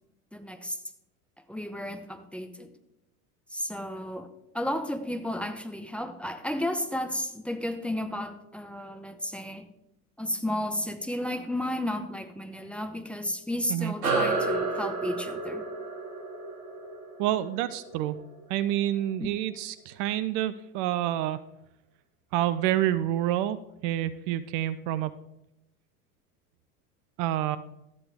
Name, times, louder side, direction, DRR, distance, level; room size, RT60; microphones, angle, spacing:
voice 1, 0.3-0.8 1.5-2.7 3.5-4.3 4.5-9.7 10.2-15.7 19.2-19.3, left 1 dB, 5° left, 8 dB, 0.8 m, -33 dB
sound 1, 14.0-18.9, right 3 dB, 80° right, 2.4 m, -31 dB
voice 2, 17.2-18.2 18.5-21.4 22.3-25.2 27.2-27.6, right 13 dB, 50° right, 14 dB, 0.6 m, -28 dB
13.0 x 9.4 x 3.5 m, 0.85 s
hypercardioid pair, 85°, 45 cm